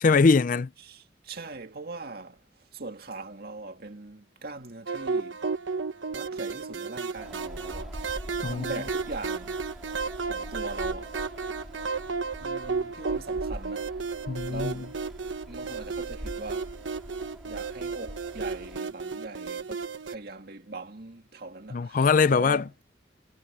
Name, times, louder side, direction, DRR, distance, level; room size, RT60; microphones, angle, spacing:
voice 1, 0.0-0.7 8.4-8.7 14.3-14.7 21.7-22.8, left 4 dB, 45° left, 0.4 m, -22 dB
voice 2, 0.8-2.4 2.7-5.4 6.1-8.0 8.5-9.6 10.2-11.1 12.4-13.9 14.5-15.0 15.5-16.7 17.5-22.7, right 2 dB, 55° right, 2.1 m, -41 dB
sound 1, 4.9-20.1, right 4 dB, 80° right, 1.1 m, -33 dB
Wind, 7.2-18.8, equal, ahead, 4.0 m, -43 dB
head